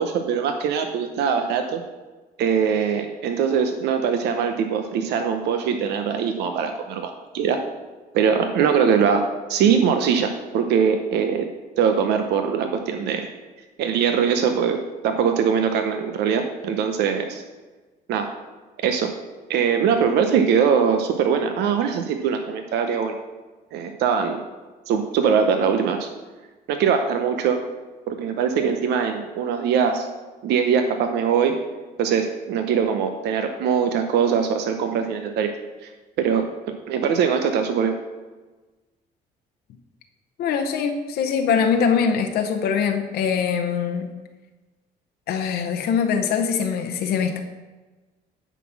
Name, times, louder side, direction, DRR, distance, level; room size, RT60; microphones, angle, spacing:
voice 1, 0.0-1.8 2.4-7.6 8.1-11.5 11.8-13.3 13.8-14.8 15.0-17.4 18.1-18.3 18.8-19.1 19.5-23.2 23.7-24.4 24.9-26.1 26.7-27.6 28.1-30.1 30.4-31.6 32.0-35.5 35.8-35.9 36.2-36.5 36.9-37.9, right 7 dB, 80° right, 5 dB, 0.8 m, -22 dB
voice 2, 40.4-44.1 45.3-47.4, left 6 dB, 70° left, 4 dB, 0.8 m, -23 dB
10.0 x 4.1 x 5.8 m, 1.3 s
cardioid pair, 110°, 17 cm